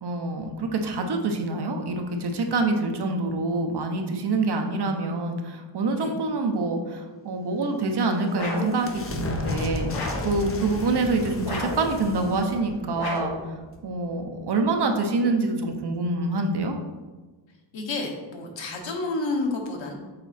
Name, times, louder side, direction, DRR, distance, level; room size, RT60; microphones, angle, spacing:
voice 1, 0.0-9.9 10.2-13.3 13.8-16.8, right 3 dB, 60° right, 4 dB, 0.9 m, -26 dB
sound 1, 7.7-14.2, left 2 dB, 30° left, 0.6 m, -35 dB
sound 2, 8.3-8.8 9.9-10.4 11.4-11.9 13.0-13.4, left 2 dB, 55° left, 1.2 m, -32 dB
voice 2, 17.7-19.9, left 2 dB, 90° left, 2 dB, 1.2 m, -30 dB
6.8 x 4.0 x 4.3 m, 1.3 s
wide cardioid pair, 155°, 44 cm